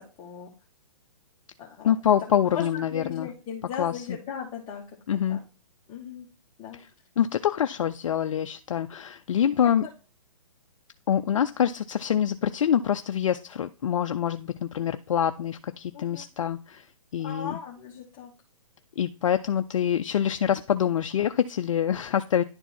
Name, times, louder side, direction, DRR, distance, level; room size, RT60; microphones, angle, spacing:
voice 1, 0.2-0.5 1.6-1.9 2.3-4.8 5.3-5.4 5.9-6.2 6.6-6.8 15.9-16.2 17.2-18.3, left 7 dB, 25° left, -3 dB, 1.3 m, -38 dB
voice 2, 1.8-3.3 3.8-4.2 5.1-5.4 6.7-6.9 7.2-9.9 11.1-16.9 17.1-17.6 19.0-22.4, left 9 dB, 65° left, 9 dB, 0.5 m, -25 dB
10.0 x 4.5 x 4.3 m, 0.34 s
hypercardioid pair, 135°, 18 cm